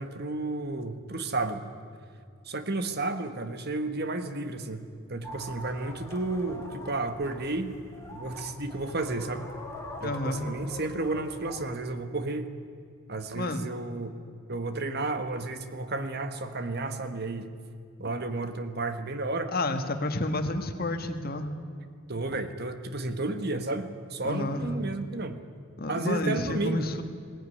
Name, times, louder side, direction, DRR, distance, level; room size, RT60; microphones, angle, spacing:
voice 1, 0.0-1.7 2.4-7.8 8.1-9.5 10.0-12.5 13.1-14.2 14.5-17.5 18.0-19.5 22.1-25.4 25.9-26.9, right 2 dB, 50° right, 9 dB, 1.4 m, -32 dB
sound 1, 5.2-11.7, left 1 dB, 15° left, 2.2 m, -43 dB
voice 2, 10.0-10.5 13.3-13.6 19.5-21.5 24.2-24.6 25.8-27.0, left 2 dB, 45° left, 7 dB, 1.6 m, -30 dB
21.0 x 17.5 x 9.8 m, 2.4 s
head